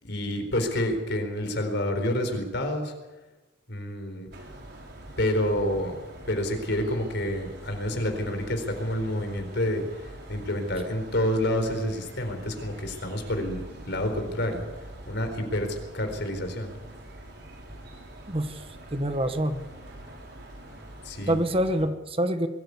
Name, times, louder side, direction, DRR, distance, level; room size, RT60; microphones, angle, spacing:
voice 1, 0.0-2.9 3.7-4.3 5.2-5.9 6.3-9.8 10.3-14.6 15.1-16.7 21.0-21.4, left 1 dB, 60° left, 6 dB, 4.3 m, -28 dB
sound 1, 4.3-21.8, right 1 dB, 60° right, 5.3 m, -44 dB
voice 2, 18.3-18.6 18.9-19.6 21.3-22.5, right 1 dB, 30° right, 9 dB, 1.3 m, -26 dB
22.5 x 14.5 x 8.3 m, 1.1 s
head